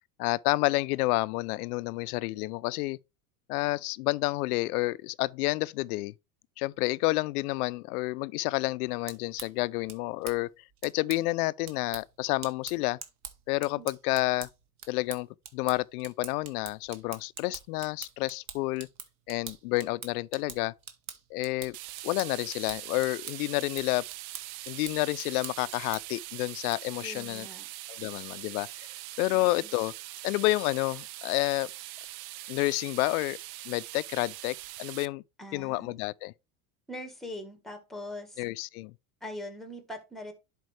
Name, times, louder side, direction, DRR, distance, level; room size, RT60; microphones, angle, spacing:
voice 1, 0.2-3.0 3.5-6.1 6.6-10.5 10.8-13.0 13.5-14.5 14.9-15.3 15.5-18.9 19.3-20.7 21.3-21.8 22.0-24.0 24.7-27.5 27.9-28.7 29.2-29.9 30.2-31.7 32.5-33.4 33.7-35.2 35.5-36.3 38.4-38.9, left 21 dB, 85° left, 0.5 m, -29 dB
sound 1, 8.9-26.2, right 8 dB, 40° right, 1.2 m, -46 dB
sound 2, 21.7-35.1, right 16 dB, 70° right, 0.6 m, -42 dB
voice 2, 27.0-27.7 35.4-36.0 36.9-38.4 39.2-40.3, left 1 dB, ahead, 1.4 m, -42 dB
10.5 x 4.5 x 3.2 m
supercardioid pair, 140°, 44 cm